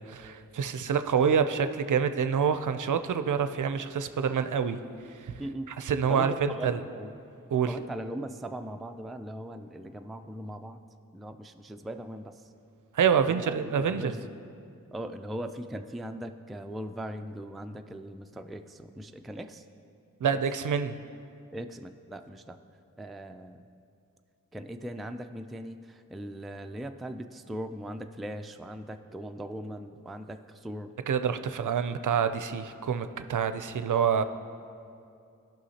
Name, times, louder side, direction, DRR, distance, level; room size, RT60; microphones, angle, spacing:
voice 1, 0.0-4.8 5.2-5.3 5.7-6.8 7.5-7.8 12.9-14.2 20.2-21.0 31.1-34.2, right 7 dB, 65° right, 10 dB, 0.5 m, -27 dB
voice 2, 5.4-5.7 6.1-7.1 7.7-10.8 11.1-12.3 13.3-14.3 14.9-19.6 21.5-22.6 23.0-23.6 24.5-25.8 26.1-30.9, right 1 dB, ahead, 7 dB, 0.3 m, -39 dB
16.0 x 5.8 x 2.8 m, 2.5 s
wide cardioid pair, 65°, 34 cm